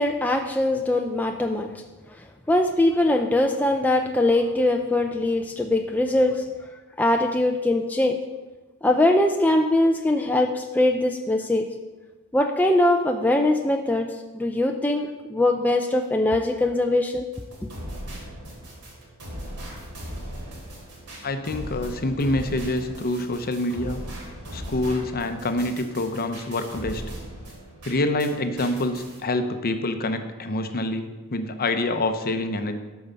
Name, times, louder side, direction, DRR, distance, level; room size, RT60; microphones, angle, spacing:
voice 1, 0.0-1.7 2.5-6.5 7.0-8.2 8.8-11.7 12.3-14.1 14.3-17.3, left 1 dB, 5° left, 3 dB, 0.4 m, -22 dB
sound 1, 17.3-28.3 28.6-29.2, equal, 85° right, 3.0 m, -38 dB
voice 2, 21.2-24.0 24.5-27.0 27.8-32.8, left 2 dB, 45° left, 8 dB, 0.7 m, -26 dB
12.0 x 4.7 x 5.2 m, 1.2 s
head